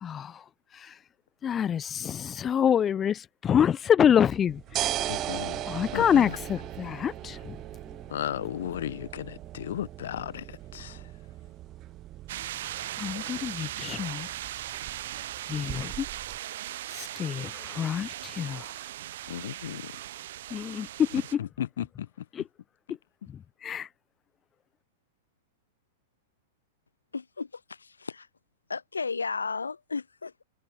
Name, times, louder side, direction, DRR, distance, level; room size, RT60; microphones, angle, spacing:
voice 1, 0.0-0.4 0.7-1.0 1.4-5.0 5.7-7.6 13.0-14.3 15.5-16.1 16.9-18.7 20.5-21.4 22.3-22.4 23.6-23.9, left 8 dB, 25° left, 0.8 m, -26 dB
sound 1, 4.3-16.4, right 15 dB, 35° right, 0.5 m, -39 dB
sound 2, 4.8-12.5, left 2 dB, 5° left, 4.7 m, -50 dB
voice 2, 5.0-5.6 5.9-6.4 8.1-11.1 19.3-19.9 21.1-22.2, left 11 dB, 60° left, 1.3 m, -35 dB
sound 3, 12.3-21.3, right 13 dB, 55° right, 1.1 m, -38 dB
voice 3, 27.1-28.3 28.7-30.4, left 4 dB, 80° left, 0.7 m, -34 dB
figure-of-eight pair, 100°, 0 cm